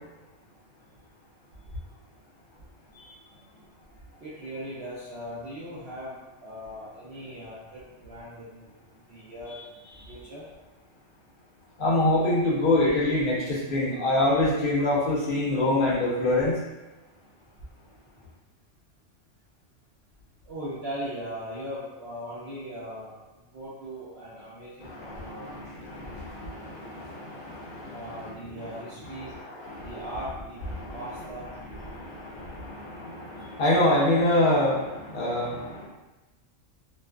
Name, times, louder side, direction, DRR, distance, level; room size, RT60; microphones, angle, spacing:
voice 1, 4.2-6.2 6.4-8.7 9.1-9.6 10.1-10.5 20.5-23.1 23.5-26.0 27.9-29.3 29.8-30.6 30.9-31.5, equal, 60° right, -10 dB, 0.8 m, -39 dB
voice 2, 11.8-16.6 24.8-28.6 29.2-30.1 30.7-31.0 31.8-35.9, left 1 dB, 50° left, -6 dB, 0.8 m, -26 dB
2.4 x 2.4 x 2.2 m, 1.1 s
omnidirectional pair, 1.3 m